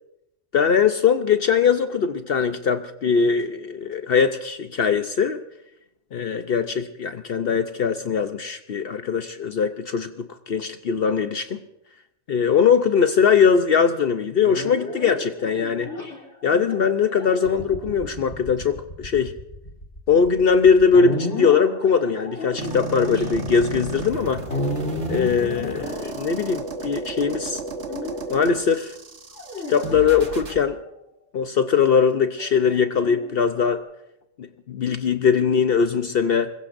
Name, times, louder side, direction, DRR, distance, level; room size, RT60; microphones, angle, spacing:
voice 1, 0.5-5.4 6.1-11.6 12.3-15.9 16.4-19.3 20.1-24.4 25.1-27.6 28.3-29.0 29.7-30.8 31.3-33.8 34.4-36.5, left 6 dB, 60° left, 8 dB, 0.9 m, -21 dB
sound 1, 14.4-27.1 27.9-28.5 29.3-30.8 32.4-33.8, left 1 dB, 90° left, 3.3 m, -33 dB
sound 2, 22.6-30.6, right 3 dB, 75° right, 1.7 m, -34 dB
25.5 x 22.0 x 2.6 m, 0.85 s
omnidirectional pair, 1.2 m